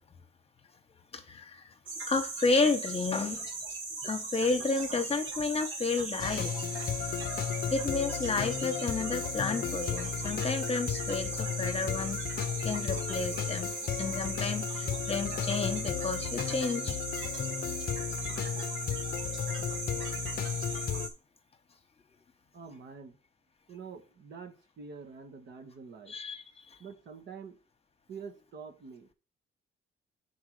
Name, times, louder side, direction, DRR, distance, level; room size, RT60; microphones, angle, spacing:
voice 1, 1.1-1.7 2.1-3.5 4.0-6.5 7.7-16.9 26.1-26.4, left 4 dB, 30° left, 1.1 m, -31 dB
sound 1, 1.9-21.1, right 3 dB, 85° right, 1.9 m, -38 dB
sound 2, 6.2-21.1, left 9 dB, 50° left, 0.6 m, -34 dB
voice 2, 22.5-23.2 23.7-26.1 26.8-27.6 28.1-29.1, right 5 dB, 60° right, 1.3 m, -46 dB
6.1 x 4.6 x 5.0 m
cardioid pair, 90°, 20 cm